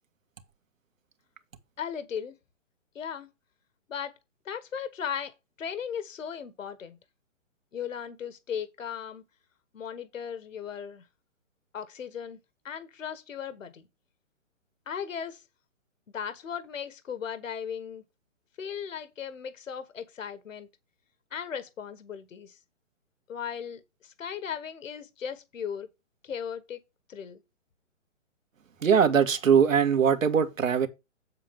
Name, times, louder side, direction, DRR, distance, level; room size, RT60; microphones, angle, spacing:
voice 1, 1.8-2.4 2.9-3.3 3.9-4.1 4.4-7.0 7.7-9.2 9.7-11.1 11.7-12.4 12.6-13.8 14.9-15.4 16.1-18.0 18.6-20.7 21.3-22.6 23.3-25.9 26.2-26.8 27.1-27.4, left 8 dB, 75° left, 1.4 m, -37 dB
voice 2, 28.8-30.9, right 7 dB, 75° right, 2.0 m, -21 dB
7.9 x 7.5 x 3.6 m
hypercardioid pair, 145°, 39 cm